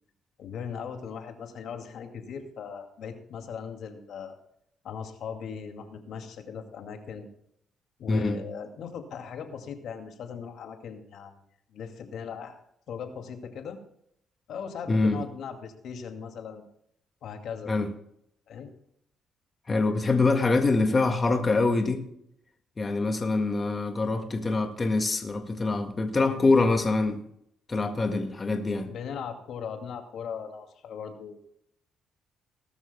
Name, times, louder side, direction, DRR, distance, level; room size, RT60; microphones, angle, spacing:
voice 1, 0.4-4.4 4.8-7.3 8.0-11.4 11.7-12.6 12.9-13.8 14.5-16.6 17.2-17.7 18.5-18.7 24.1-24.3 28.9-31.4, left 6 dB, 70° left, 5 dB, 2.3 m, -39 dB
voice 2, 8.1-8.4 14.9-15.2 17.7-17.9 19.7-22.1 22.8-27.2 27.7-28.9, left 3 dB, 30° left, 5 dB, 1.8 m, -25 dB
19.0 x 12.5 x 2.2 m, 0.73 s
cardioid pair, 90°, 0 cm